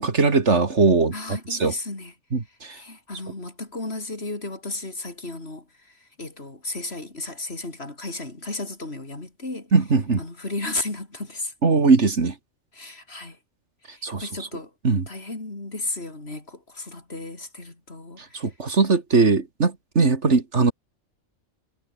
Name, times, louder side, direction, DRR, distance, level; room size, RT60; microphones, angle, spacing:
voice 1, 0.0-1.8 2.3-2.8 9.7-10.2 11.6-12.3 14.0-14.3 14.8-15.0 18.3-20.7, right 4 dB, 60° right, 2.5 m, -20 dB
voice 2, 1.1-2.1 2.7-5.7 6.2-9.7 10.2-11.5 12.7-13.4 13.9-14.7 15.1-18.4, left 2 dB, 50° left, 4.2 m, -34 dB
omnidirectional pair, 1.3 m